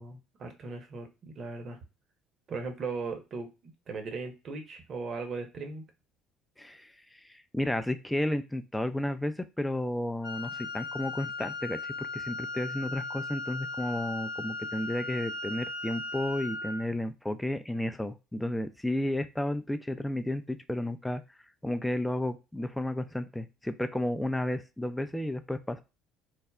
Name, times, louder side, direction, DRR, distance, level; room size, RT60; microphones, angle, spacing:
voice 1, 0.0-1.8 2.5-5.9, right 4 dB, 50° right, 5 dB, 0.8 m, -38 dB
voice 2, 6.6-6.9 7.3-21.2 21.6-25.8, left 1 dB, 5° left, 9 dB, 0.4 m, -32 dB
Wind instrument woodwind instrument, 10.2-16.9, left 3 dB, 80° left, 0.8 m, -37 dB
3.3 x 2.0 x 2.3 m, 0.28 s
hypercardioid pair, 60°, 0 cm